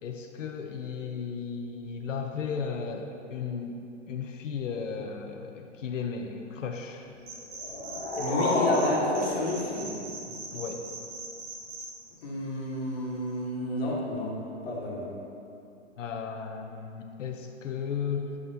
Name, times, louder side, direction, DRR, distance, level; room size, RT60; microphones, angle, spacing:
voice 1, 0.0-3.8 4.1-7.1 10.5-10.8 16.0-18.4, left 6 dB, 85° left, 3 dB, 0.7 m, -35 dB
sound 1, 7.2-8.9 9.1-11.9, right 4 dB, 30° right, 1.1 m, -40 dB
sound 2, 7.5-10.5, left 1 dB, 15° left, 1.0 m, -29 dB
voice 2, 8.1-9.9 12.2-14.3 14.6-15.1, left 1 dB, 55° left, -4 dB, 1.5 m, -31 dB
9.2 x 5.7 x 2.7 m, 2.7 s
hypercardioid pair, 150°, 37 cm